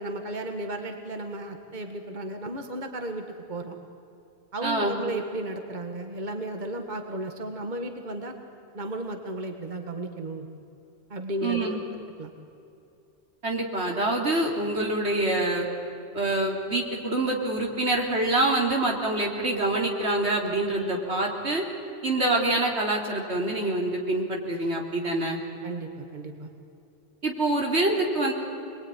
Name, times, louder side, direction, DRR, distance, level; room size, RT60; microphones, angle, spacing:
voice 1, 0.0-3.8 4.5-8.4 8.7-10.5 11.1-11.8 12.2-12.3 25.6-26.5, right 1 dB, 45° right, 5 dB, 1.8 m, -34 dB
voice 2, 4.6-5.0 11.4-11.8 13.4-15.7 16.1-21.6 22.0-25.4 27.2-28.3, right 2 dB, 90° right, -1 dB, 3.7 m, -26 dB
26.5 x 21.0 x 9.8 m, 2.7 s
omnidirectional pair, 1.1 m